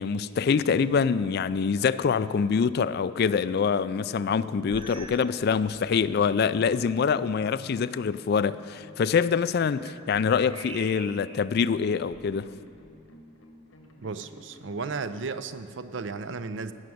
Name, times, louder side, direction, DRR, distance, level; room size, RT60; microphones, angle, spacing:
voice 1, 0.0-12.5, left 6 dB, 50° left, 0.3 m, -25 dB
sound 1, 3.9-14.8, left 1 dB, 85° left, 1.5 m, -52 dB
sound 2, 4.7-5.3 5.6-6.0 6.6-6.7 9.1-11.4 12.0-13.0, right 3 dB, 25° right, 0.8 m, -46 dB
voice 2, 14.0-16.7, right 4 dB, 65° right, 0.6 m, -34 dB
16.0 x 6.2 x 7.8 m
head